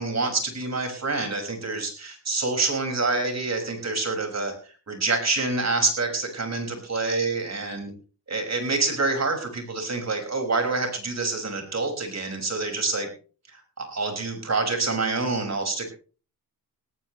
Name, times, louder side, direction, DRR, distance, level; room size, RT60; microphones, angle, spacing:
voice 1, 0.0-4.5 4.9-7.9 8.3-13.1 13.5-15.9, right 3 dB, 40° right, 4 dB, 6.0 m, -27 dB
18.0 x 16.5 x 3.3 m, 0.39 s
cardioid pair, 90°, 40 cm